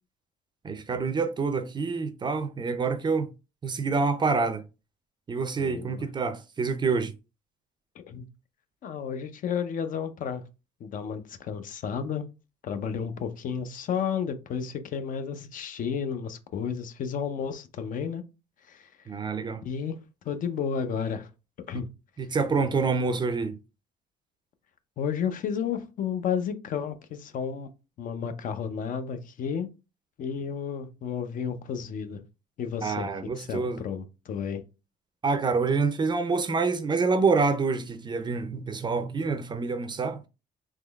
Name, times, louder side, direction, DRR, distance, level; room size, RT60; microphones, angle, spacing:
voice 1, 0.6-3.3 3.6-4.6 5.3-7.1 19.1-19.6 22.2-23.5 32.8-33.8 35.2-40.3, right 4 dB, 25° right, 0.4 m, -27 dB
voice 2, 5.6-6.0 8.0-8.3 8.8-10.4 10.8-12.2 12.6-18.2 18.7-18.9 19.6-20.0 20.3-21.3 21.7-21.9 25.0-27.7 28.0-29.7 30.2-32.2 32.6-33.1 33.4-34.6, left 7 dB, 50° left, 0.6 m, -32 dB
3.6 x 3.0 x 2.3 m
cardioid pair, 110°, 17 cm